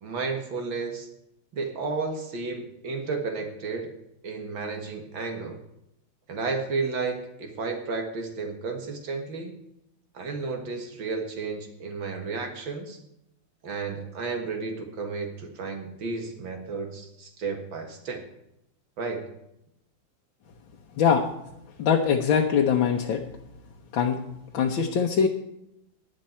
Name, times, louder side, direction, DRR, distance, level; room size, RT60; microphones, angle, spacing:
voice 1, 0.0-1.1 1.5-3.9 4.2-5.6 6.3-9.5 10.1-13.0 13.6-18.2 19.0-19.3, right 4 dB, 80° right, 4 dB, 2.5 m, -32 dB
voice 2, 21.8-23.2 23.9-24.2 24.5-25.3, left 7 dB, 90° left, 1 dB, 1.8 m, -22 dB
17.0 x 11.0 x 4.4 m, 0.83 s
omnidirectional pair, 2.1 m